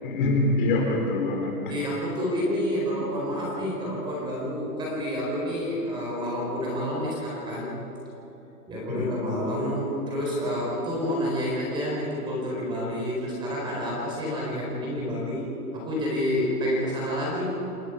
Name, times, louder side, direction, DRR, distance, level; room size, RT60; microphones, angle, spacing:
voice 1, 0.0-1.7 8.9-9.2, left 2 dB, 35° left, 0 dB, 3.5 m, -25 dB
voice 2, 1.7-7.7 8.7-15.5 15.7-17.5, equal, 10° right, -3 dB, 4.2 m, -29 dB
29.0 x 20.5 x 5.0 m, 3.0 s
hypercardioid pair, 175°, 45 cm